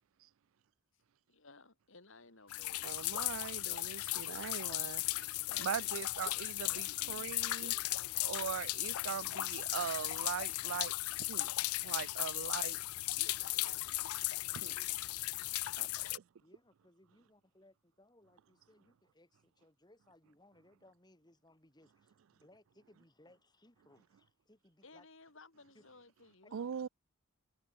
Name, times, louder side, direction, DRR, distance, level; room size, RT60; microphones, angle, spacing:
voice 1, 1.3-3.0 5.5-6.0 6.3-10.6 13.1-15.0 24.8-26.9, left 3 dB, 60° left, 2.7 m, -59 dB
sound 1, 2.5-16.2, left 18 dB, 90° left, 0.5 m, -37 dB
voice 2, 2.8-5.0 5.6-7.7 8.2-10.9 11.2-11.5 11.8-12.8 14.6-14.7 15.8-16.2 26.5-26.9, right 8 dB, 70° right, 0.4 m, -41 dB
voice 3, 16.4-25.1 25.7-25.8, left 1 dB, 20° left, 2.7 m, -65 dB
head